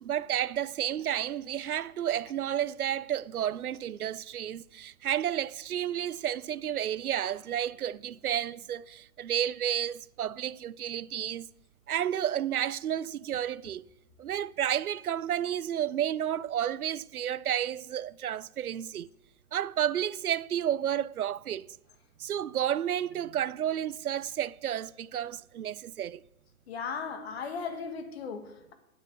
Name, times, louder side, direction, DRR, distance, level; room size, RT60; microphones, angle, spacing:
voice 1, 0.0-11.5 11.9-13.8 14.2-19.1 19.5-21.7 22.2-26.2, right 10 dB, 85° right, 0.5 m, -31 dB
voice 2, 26.7-28.7, left 5 dB, 45° left, 1.6 m, -37 dB
9.3 x 7.1 x 7.1 m
figure-of-eight pair, 130°, 43 cm